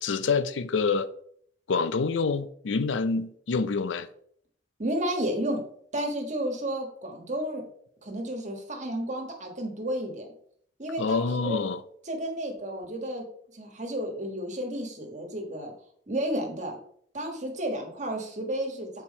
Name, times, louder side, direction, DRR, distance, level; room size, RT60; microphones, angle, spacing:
voice 1, 0.0-1.1 1.7-4.1 11.0-11.8, left 4 dB, 85° left, 0.5 m, -27 dB
voice 2, 4.8-5.6 5.9-7.6 8.0-10.3 10.8-11.6 12.0-13.3 13.5-15.7 16.1-16.8 17.1-18.9, right 1 dB, 40° right, 1.5 m, -32 dB
7.0 x 4.6 x 4.2 m
head